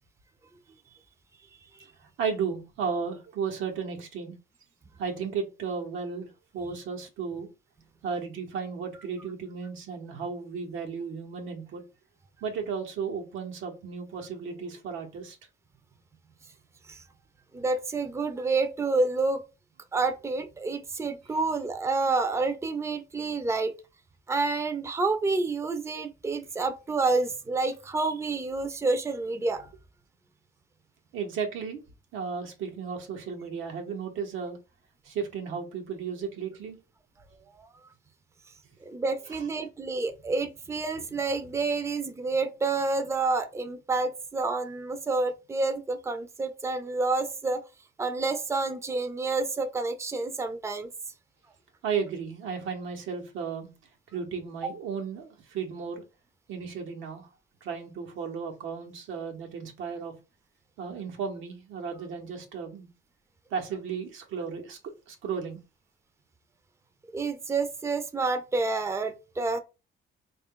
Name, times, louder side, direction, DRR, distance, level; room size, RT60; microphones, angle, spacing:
voice 1, 2.2-4.3 5.0-7.5 8.0-11.8 12.4-15.4 31.1-31.8 32.1-34.6 35.0-36.8 51.8-53.7 54.1-56.0 56.5-57.3 57.6-60.1 60.8-62.9 63.5-64.8 65.1-65.6, right 6 dB, 85° right, 1.1 m, -34 dB
voice 2, 17.5-19.4 19.9-23.7 24.3-29.7 37.5-37.7 38.8-47.6 48.0-50.9 54.6-54.7 67.1-69.6, right 3 dB, 15° right, 0.5 m, -29 dB
3.8 x 2.6 x 3.7 m
cardioid pair, 90°, 20 cm